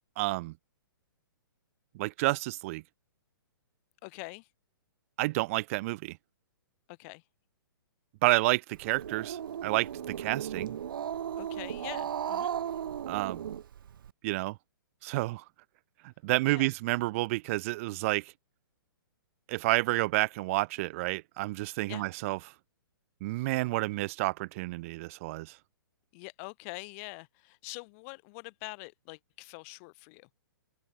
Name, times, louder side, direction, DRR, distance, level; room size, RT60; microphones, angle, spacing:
voice 1, 0.2-0.5 1.9-2.8 5.2-6.2 8.2-10.8 13.1-13.5 14.2-14.6 15.0-15.4 16.0-18.3 19.5-22.4 23.2-25.6, right 21 dB, 35° right, 0.4 m, -30 dB
voice 2, 4.0-4.5 6.9-7.2 11.4-12.5 16.4-16.7 21.9-22.1 26.1-30.3, left 32 dB, 35° left, 1.2 m, -44 dB
Growling, 8.7-14.1, right 9 dB, 65° right, 1.9 m, -36 dB
hypercardioid pair, 130°, 12 cm